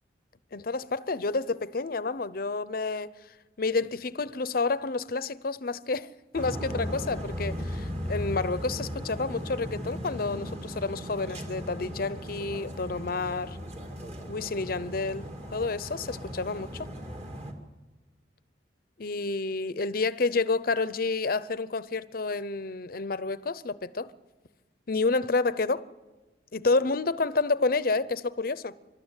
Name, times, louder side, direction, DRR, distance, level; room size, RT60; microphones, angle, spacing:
voice 1, 0.5-3.1 3.6-13.6 14.2-16.9 19.0-24.1 24.9-25.8 26.5-28.7, left 3 dB, 50° left, 0.7 m, -29 dB
sound 1, 6.3-17.5, equal, 35° right, 2.4 m, -37 dB
27.0 x 13.0 x 9.0 m
head